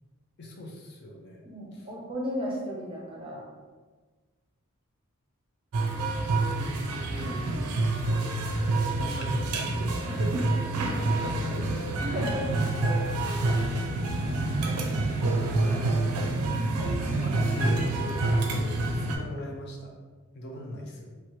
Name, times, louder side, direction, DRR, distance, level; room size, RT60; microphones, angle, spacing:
voice 1, 0.4-1.5 1.7-1.9 6.2-6.8 7.2-7.7 9.0-10.3 10.8-11.9 15.6-16.2 17.1-19.9 20.3-21.1, left 1 dB, 50° left, 0 dB, 0.4 m, -39 dB
voice 2, 1.4-3.4 10.0-10.3 12.0-12.5 13.3-13.5 16.8-16.9, equal, 25° right, -3 dB, 0.5 m, -35 dB
sound 1, 5.7-19.2, right 2 dB, 85° right, 0.4 m, -27 dB
2.7 x 2.2 x 3.0 m, 1.4 s
head